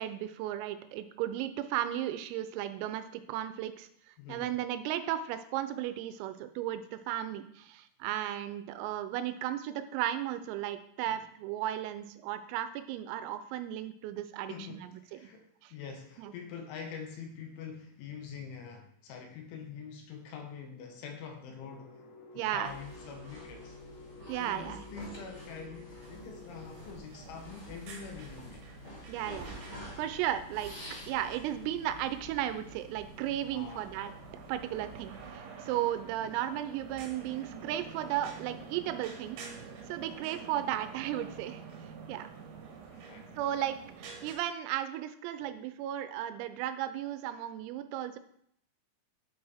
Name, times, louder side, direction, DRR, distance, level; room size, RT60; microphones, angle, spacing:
voice 1, 0.0-15.2 15.6-15.7 16.2-16.3 22.3-22.7 24.3-24.8 29.1-30.7 31.1-34.1 34.5-39.4 39.9-41.6 42.1-42.3 43.4-48.2, right 12 dB, 85° right, 10 dB, 3.3 m, -35 dB
voice 2, 4.2-4.6 11.0-11.2 14.5-23.8 24.4-28.7 33.5-33.9 36.2-36.3 42.9-43.4, left 6 dB, 75° left, 3 dB, 3.2 m, -45 dB
sound 1, 21.6-26.9, left 3 dB, 60° left, 3.6 m, -52 dB
sound 2, 22.6-35.3, equal, 35° left, 0.5 m, -49 dB
sound 3, 26.0-44.4, right 5 dB, 70° right, 3.2 m, -49 dB
8.6 x 7.9 x 3.5 m, 0.69 s
omnidirectional pair, 6.0 m